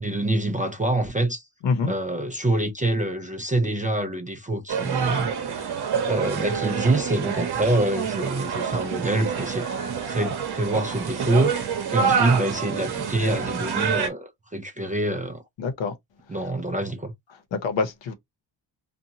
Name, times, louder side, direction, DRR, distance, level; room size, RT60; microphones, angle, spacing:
voice 1, 0.0-1.4 1.9-9.7 10.1-11.5 11.9-15.4 16.3-17.1, right 2 dB, 20° right, 0.4 m, -26 dB
sound 1, 4.7-14.1, right 7 dB, 55° right, 0.9 m, -27 dB
voice 2, 15.6-15.9 17.5-18.1, left 4 dB, 65° left, 0.8 m, -26 dB
2.7 x 2.3 x 2.7 m
cardioid pair, 90°, 47 cm